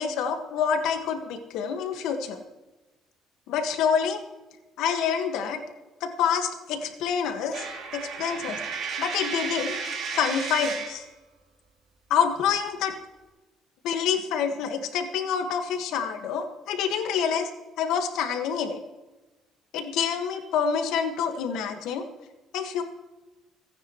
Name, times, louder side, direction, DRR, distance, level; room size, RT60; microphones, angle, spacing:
voice 1, 0.0-2.4 3.5-4.2 4.8-5.6 6.0-7.6 7.9-8.6 9.0-9.8 10.1-11.0 12.1-12.9 13.8-17.5 17.8-18.8 19.7-22.0 22.5-22.8, left 7 dB, 75° left, 5 dB, 1.7 m, -27 dB
Coin (dropping), 7.5-11.0, right 5 dB, 45° right, 2.8 m, -33 dB
28.0 x 9.6 x 3.2 m, 1.1 s
cardioid pair, 160°, 0 cm